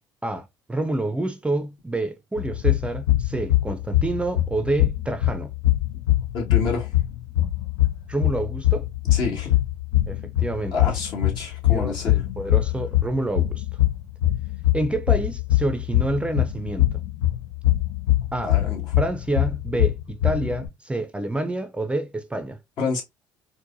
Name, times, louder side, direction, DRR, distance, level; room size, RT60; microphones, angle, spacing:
voice 1, 0.2-5.5 8.1-8.9 10.1-10.7 11.7-13.6 14.7-17.0 18.3-18.5 19.0-22.6, right 2 dB, 15° right, 0.5 m, -28 dB
sound 1, 2.4-20.7, left 15 dB, 85° left, 0.6 m, -23 dB
voice 2, 6.3-6.9 9.1-9.5 10.7-12.2 18.4-18.9 22.8-23.0, left 4 dB, 60° left, 1.6 m, -28 dB
4.5 x 2.1 x 2.5 m
hypercardioid pair, 65°, 9 cm